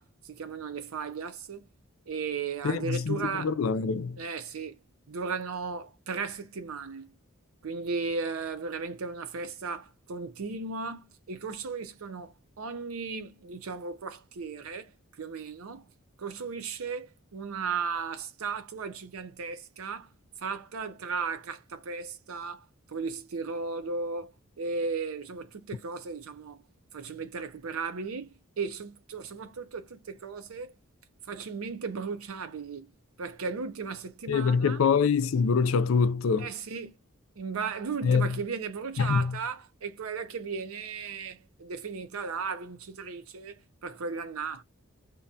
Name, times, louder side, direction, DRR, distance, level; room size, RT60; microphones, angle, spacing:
voice 1, 0.0-1.7 2.1-3.6 4.2-4.8 5.1-7.1 7.6-15.9 16.2-20.1 20.4-26.6 26.9-30.8 31.3-32.9 33.2-34.8 36.4-37.0 37.4-44.6, right 5 dB, 90° right, 0.6 m, -36 dB
voice 2, 2.6-4.2 34.3-36.5 38.0-38.3 39.0-39.3, left 5 dB, 75° left, 0.4 m, -25 dB
2.6 x 2.2 x 2.6 m
head